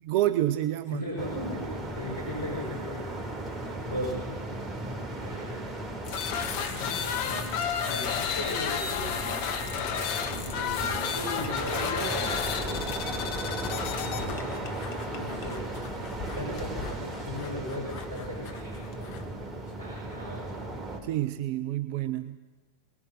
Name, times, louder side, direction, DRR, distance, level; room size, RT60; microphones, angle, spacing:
voice 1, 0.0-1.0 21.0-22.4, right 14 dB, 45° right, 13 dB, 0.7 m, -28 dB
voice 2, 0.9-3.1 3.6-4.3 5.0-5.6 6.6-7.6 7.8-9.6 10.3-12.9 15.0-15.7 16.4-19.1 19.8-20.6, left 1 dB, 85° left, -3 dB, 6.3 m, -38 dB
sound 1, 1.2-21.0, right 2 dB, 20° right, 3.7 m, -36 dB
sound 2, 6.0-19.2, left 7 dB, 50° left, 2.4 m, -33 dB
24.0 x 20.5 x 6.4 m, 1.3 s
figure-of-eight pair, 90°, 0 cm